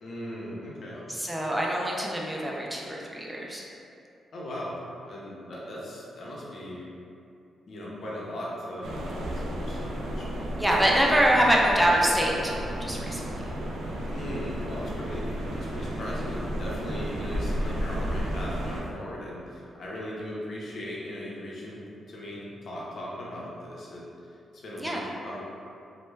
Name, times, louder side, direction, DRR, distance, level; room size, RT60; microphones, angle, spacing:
voice 1, 0.0-1.1 4.3-4.8 5.0-6.9 7.7-10.9 14.1-24.0 24.5-25.4, left 1 dB, 60° left, -5 dB, 0.5 m, -38 dB
voice 2, 1.1-3.6 10.6-13.5 24.8-25.0, equal, 10° right, -3 dB, 0.3 m, -25 dB
sound 1, 8.8-18.8, equal, 85° right, 0.3 m, -33 dB
2.2 x 2.1 x 3.1 m, 2.6 s
cardioid pair, 110°, 0 cm